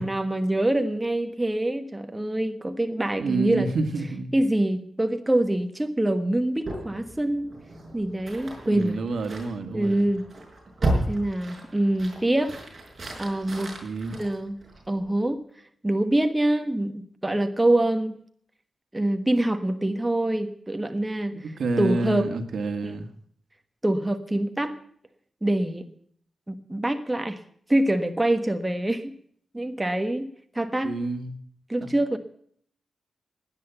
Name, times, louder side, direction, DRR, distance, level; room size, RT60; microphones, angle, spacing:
voice 1, 0.0-3.7 4.3-7.5 7.9-9.0 9.7-10.2 11.1-12.5 13.2-13.7 14.1-14.6 14.9-15.4 15.8-18.1 18.9-21.5 21.8-22.3 22.8-22.9 23.8-24.8 25.4-25.8 26.5-27.4 27.7-29.1 29.5-30.9 31.7-32.2, right 1 dB, 15° right, 7 dB, 1.3 m, -25 dB
voice 2, 3.2-4.4 8.6-10.1 13.8-14.2 21.3-23.1 30.8-31.4 31.8-31.9, right 3 dB, 75° right, 7 dB, 1.7 m, -29 dB
sound 1, 6.6-15.1, right 1 dB, 35° right, 6.0 m, -34 dB
17.5 x 10.5 x 7.0 m, 0.62 s
wide cardioid pair, 110°, 0 cm